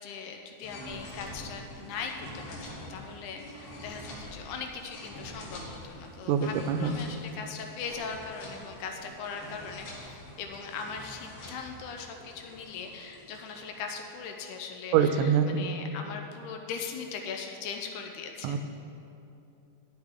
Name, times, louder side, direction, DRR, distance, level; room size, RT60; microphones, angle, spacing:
voice 1, 0.0-18.6, left 5 dB, 80° left, 3 dB, 2.0 m, -40 dB
sound 1, 0.6-14.6, left 1 dB, 55° left, 2.2 m, -46 dB
voice 2, 6.3-6.9 14.9-15.7 18.4-18.6, right 7 dB, 85° right, 9 dB, 2.2 m, -24 dB
11.5 x 7.9 x 3.6 m, 2.8 s
omnidirectional pair, 3.7 m